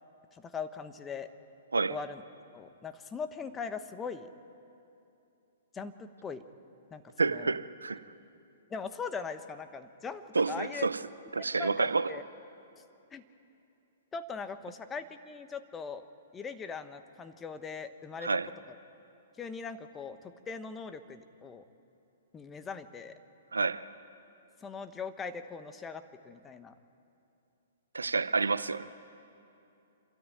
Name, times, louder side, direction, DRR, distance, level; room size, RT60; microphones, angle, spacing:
voice 1, 0.3-1.3 1.9-2.2 2.5-4.3 5.7-6.4 6.9-7.5 8.7-10.9 11.6-12.2 13.1-13.2 14.1-16.0 16.3-18.3 19.4-21.6 22.3-23.2 24.6-26.7, left 5 dB, 15° left, 1.1 m, -40 dB
voice 2, 7.2-8.0 10.3-11.0 11.3-12.1 18.2-18.5 23.5-23.9 27.9-29.0, right 4 dB, 85° right, 0.7 m, -29 dB
27.0 x 13.5 x 9.2 m
hypercardioid pair, 120°, 0 cm